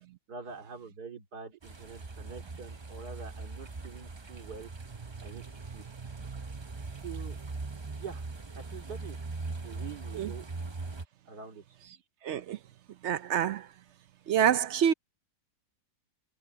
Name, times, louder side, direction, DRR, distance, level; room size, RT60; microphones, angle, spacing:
voice 1, 0.3-4.7 5.2-5.8 7.0-7.4 7.9-8.2 8.5-9.2 9.5-10.4 11.2-11.8, right 5 dB, 85° right, 3.2 m, -45 dB
sound 1, 1.6-11.0, right 3 dB, 35° right, 0.4 m, -41 dB
voice 2, 12.2-12.6 13.0-13.7 14.3-14.9, right 9 dB, 65° right, 0.7 m, -27 dB
omnidirectional pair, 1.6 m